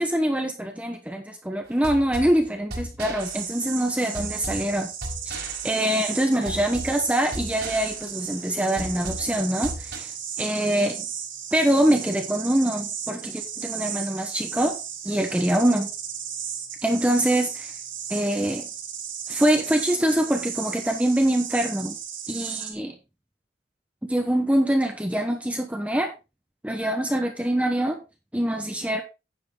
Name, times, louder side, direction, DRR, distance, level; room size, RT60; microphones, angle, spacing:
voice 1, 0.0-4.9 5.2-10.1 10.4-11.1 11.5-14.8 15.0-15.9 16.8-17.7 18.1-18.7 19.3-22.0 22.3-22.9 24.0-26.1 26.6-28.0 28.3-29.0, right 1 dB, 5° right, 4 dB, 1.0 m, -24 dB
sound 1, 1.7-10.0, right 1 dB, 55° right, 4.4 m, -37 dB
sound 2, 3.2-22.7, right 8 dB, 85° right, 2.8 m, -35 dB
10.0 x 7.6 x 3.4 m, 0.27 s
head